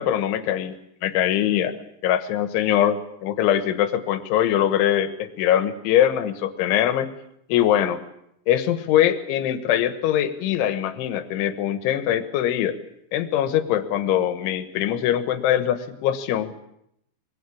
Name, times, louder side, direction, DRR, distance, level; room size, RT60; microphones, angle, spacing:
voice 1, 0.0-7.1 7.5-8.0 8.5-12.8 13.1-16.5, left 11 dB, 85° left, 12 dB, 3.8 m, -22 dB
24.0 x 22.5 x 8.6 m, 0.76 s
omnidirectional pair, 5.3 m